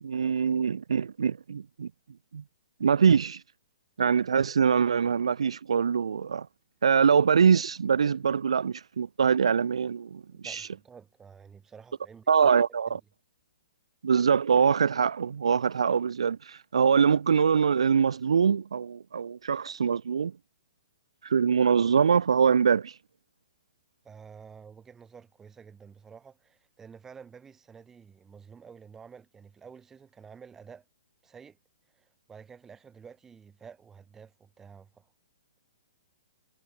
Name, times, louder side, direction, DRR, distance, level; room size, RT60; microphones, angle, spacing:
voice 1, 0.0-1.9 2.3-2.4 2.8-3.4 4.0-6.5 6.8-10.7 12.3-12.9 14.0-20.3 21.2-22.9, right 6 dB, 75° right, 0.7 m, -23 dB
voice 2, 10.3-12.5 12.9-13.0 24.0-30.9 31.2-31.6 31.9-35.1, right 6 dB, 15° right, 3.5 m, -50 dB
hypercardioid pair, 130°, 3 cm